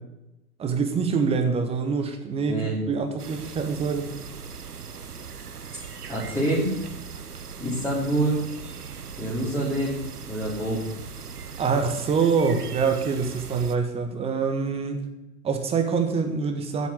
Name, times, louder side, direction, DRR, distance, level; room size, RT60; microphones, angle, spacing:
voice 1, 0.6-4.1 11.6-15.0 15.4-16.9, right 5 dB, 15° right, 6 dB, 1.4 m, -25 dB
sound 1, 3.2-13.8, right 6 dB, 75° right, 1.1 m, -39 dB
voice 2, 6.1-6.7 7.6-8.4 9.2-10.0 10.3-10.9, right 1 dB, 5° left, -8 dB, 3.5 m, -26 dB
10.0 x 8.3 x 9.6 m, 0.93 s
figure-of-eight pair, 110°, 46 cm